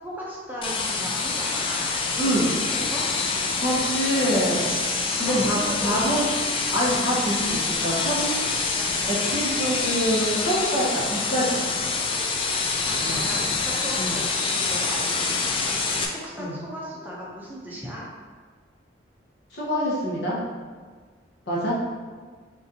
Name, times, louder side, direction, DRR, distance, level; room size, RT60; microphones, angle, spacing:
voice 1, 0.0-3.0 5.1-6.2 7.2-7.4 12.6-15.4 15.7-16.0 16.2-18.0, equal, 10° right, -5 dB, 0.6 m, -36 dB
sound 1, 0.6-16.1, left 4 dB, 30° left, 0.3 m, -26 dB
voice 2, 2.2-2.5 3.6-4.9 5.2-6.2 6.7-8.7 9.1-11.6 13.0-13.3 14.0-14.2 16.4-16.6 19.5-20.4 21.5-21.8, equal, 60° left, -6 dB, 1.1 m, -25 dB
4.2 x 3.9 x 2.7 m, 1.5 s
head